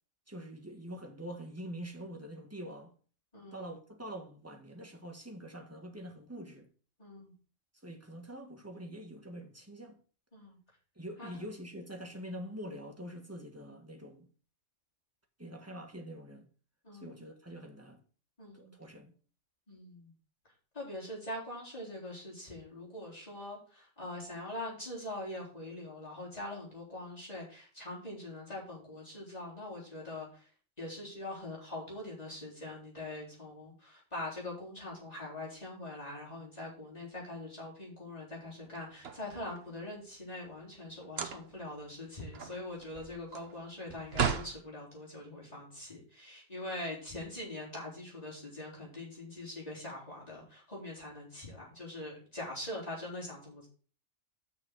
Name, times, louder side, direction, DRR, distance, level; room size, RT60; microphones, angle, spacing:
voice 1, 0.3-2.9 3.5-6.7 7.8-10.0 10.9-14.3 15.4-16.5 16.9-18.0 18.5-19.1, equal, 10° right, 1.5 m, -45 dB
voice 2, 3.3-3.6 7.0-7.3 10.3-10.6 11.2-11.5 16.8-17.2 18.4-18.7 19.7-20.1 20.7-30.5 30.8-53.7, left 1 dB, 30° left, 3.9 m, -43 dB
sound 1, 38.6-39.8 41.0-41.7 42.1-44.6, right 7 dB, 55° right, 1.1 m, -36 dB
6.4 x 5.8 x 6.7 m
omnidirectional pair, 1.3 m